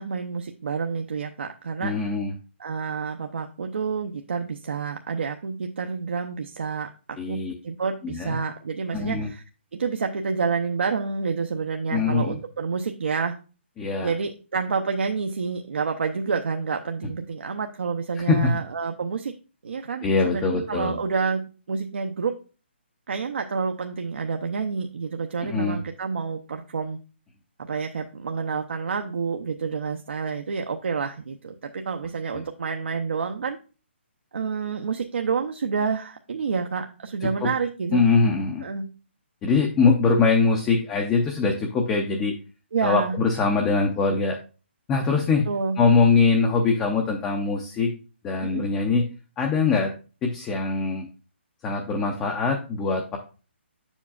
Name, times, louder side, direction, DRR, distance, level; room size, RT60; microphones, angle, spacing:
voice 1, 0.0-1.9 2.6-6.9 7.3-9.4 9.7-13.3 14.0-19.3 19.6-21.4 21.7-22.4 23.1-27.0 27.6-33.6 34.3-38.0 38.6-38.9 42.7-43.2 45.5-45.8 48.4-48.7, right 5 dB, 70° right, 4 dB, 0.7 m, -28 dB
voice 2, 1.8-2.3 7.2-7.5 8.0-8.4 8.9-9.3 11.9-12.4 13.8-14.1 18.2-18.5 20.0-20.9 25.4-25.8 32.3-32.4 37.2-37.5 37.9-38.6 39.4-42.3 42.8-44.4 44.9-45.5 45.8-47.9 48.2-49.1 49.4-49.9 50.2-51.1 51.6-53.2, left 4 dB, 10° left, 3 dB, 0.5 m, -22 dB
8.1 x 7.2 x 2.4 m, 0.34 s
hypercardioid pair, 170°, 6 cm